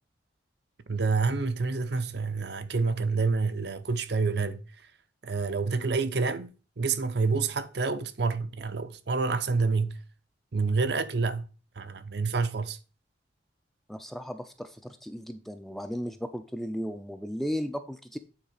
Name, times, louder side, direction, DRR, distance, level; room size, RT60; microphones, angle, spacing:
voice 1, 0.9-4.9 5.2-10.0 10.5-11.5 11.8-12.8, right 4 dB, 60° right, 0.6 m, -28 dB
voice 2, 13.9-18.2, equal, ahead, 0.4 m, -35 dB
8.9 x 3.9 x 4.9 m
head